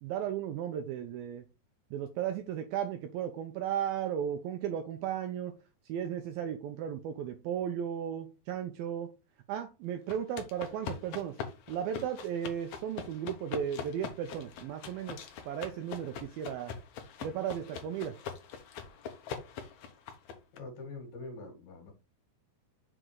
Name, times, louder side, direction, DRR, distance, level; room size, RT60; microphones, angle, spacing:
voice 1, 0.0-1.5 1.9-5.6 5.9-9.1 9.5-11.4 11.7-15.2 15.5-16.7 17.2-18.2, right 9 dB, 80° right, 2.2 m, -35 dB
sound 1, 10.1-20.6, left 7 dB, 85° left, 1.6 m, -43 dB
voice 2, 20.6-21.9, left 3 dB, 65° left, 2.9 m, -44 dB
6.5 x 3.8 x 4.6 m
omnidirectional pair, 4.8 m